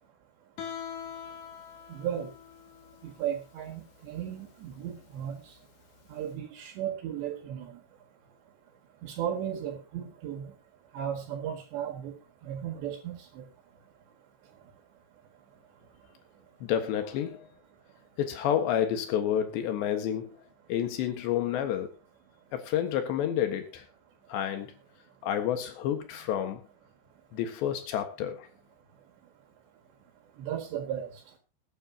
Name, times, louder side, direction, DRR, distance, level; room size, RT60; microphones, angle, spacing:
Guitar, 0.6-6.3, left 8 dB, 60° left, 3.1 m, -44 dB
voice 1, 1.9-2.3 3.0-5.4 6.1-7.8 9.0-10.5 10.9-12.1 12.4-13.5 30.4-31.1, right 9 dB, 85° right, 4 dB, 4.2 m, -35 dB
voice 2, 16.6-17.5 18.2-20.3 20.7-21.9 22.5-23.9 24.3-24.7 25.2-26.7 27.3-28.5, left 10 dB, 85° left, 6 dB, 3.8 m, -29 dB
21.5 x 9.4 x 2.9 m, 0.28 s
omnidirectional pair, 4.9 m